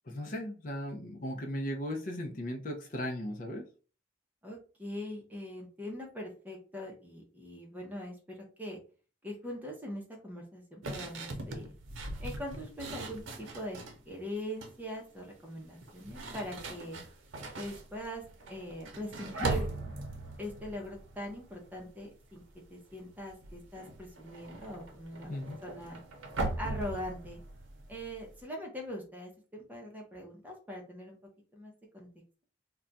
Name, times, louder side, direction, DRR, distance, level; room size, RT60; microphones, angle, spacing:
voice 1, 0.1-3.6 25.3-25.6, equal, 45° left, 2 dB, 0.5 m, -37 dB
voice 2, 4.4-8.8 9.2-11.7 12.2-17.0 17.5-18.2 18.5-19.7 20.4-22.4 22.7-25.3 25.6-26.0 26.6-27.4 27.9-31.2 31.5-32.1, equal, 10° right, 0 dB, 0.6 m, -42 dB
sound 1, 10.8-14.0 14.4-14.9 15.7-22.0 22.3-22.6 22.9-28.4, right 2 dB, 85° right, 0.7 m, -40 dB
2.3 x 2.2 x 3.9 m, 0.37 s
head